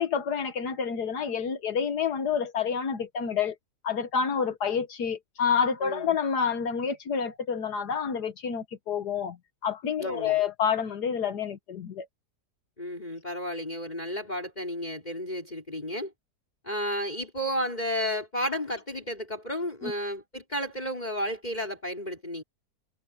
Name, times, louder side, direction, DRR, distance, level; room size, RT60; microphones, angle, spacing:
voice 1, 0.0-3.6 3.8-9.4 9.6-12.1 19.8-19.9, left 7 dB, 75° left, 1.8 m, -28 dB
voice 2, 5.8-6.1 10.0-10.4 12.8-16.1 16.6-22.4, equal, 25° left, 5.3 m, -32 dB
omnidirectional pair, 1.8 m